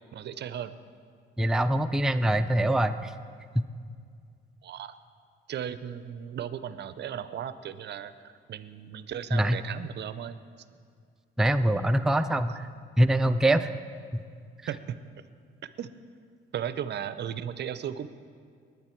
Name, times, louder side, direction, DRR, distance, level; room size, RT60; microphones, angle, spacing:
voice 1, 0.1-0.8 4.6-4.9 5.5-8.1 8.5-10.4 12.3-12.6 14.7-15.0 15.8-15.9 16.5-18.1, right 9 dB, 60° right, 13 dB, 0.6 m, -36 dB
voice 2, 1.4-3.1 9.3-9.6 11.4-12.7 13.0-13.7, right 1 dB, 5° right, 9 dB, 0.4 m, -24 dB
20.0 x 9.7 x 4.5 m, 2.2 s
cardioid pair, 90°, 20 cm